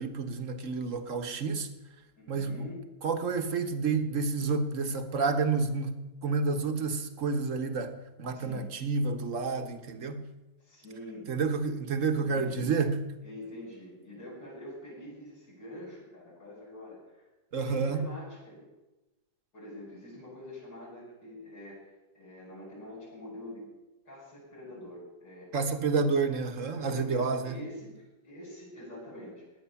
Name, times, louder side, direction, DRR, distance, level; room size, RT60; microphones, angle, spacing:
voice 1, 0.0-1.7 2.3-2.7 3.0-6.0 6.2-7.9 8.2-10.2 11.3-13.0 17.5-18.1 25.5-27.6, right 4 dB, 50° right, 7 dB, 1.4 m, -29 dB
voice 2, 2.2-2.8 8.3-8.7 10.6-11.3 12.2-12.7 13.2-17.2 17.6-18.6 19.5-23.7 24.1-25.6 26.7-29.4, left 1 dB, 85° left, -9 dB, 7.9 m, -45 dB
17.5 x 10.5 x 7.0 m, 1.1 s
omnidirectional pair, 2.0 m